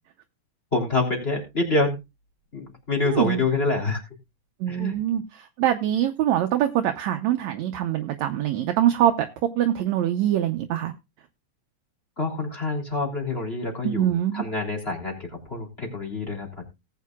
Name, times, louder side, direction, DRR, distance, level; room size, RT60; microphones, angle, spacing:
voice 1, 0.7-2.0 2.5-4.0 4.7-4.9 12.2-16.6, left 2 dB, 20° left, 3.2 m, -26 dB
voice 2, 3.1-3.4 4.6-9.3 9.6-10.9 13.8-14.4, right 11 dB, 75° right, 1.9 m, -24 dB
18.5 x 8.4 x 2.3 m
omnidirectional pair, 3.5 m